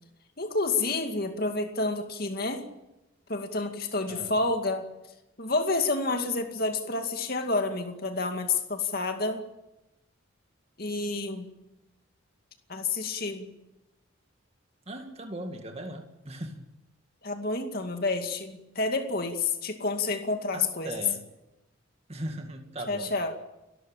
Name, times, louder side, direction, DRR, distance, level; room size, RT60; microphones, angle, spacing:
voice 1, 0.4-2.6 3.3-4.8 5.4-9.4 10.8-11.5 12.7-13.5 17.2-21.0 22.9-23.3, left 3 dB, 45° left, 5 dB, 2.3 m, -29 dB
voice 2, 14.9-16.6 20.5-21.2 22.1-23.1, right 1 dB, 30° right, 4 dB, 2.1 m, -38 dB
30.0 x 13.5 x 8.9 m, 0.96 s
head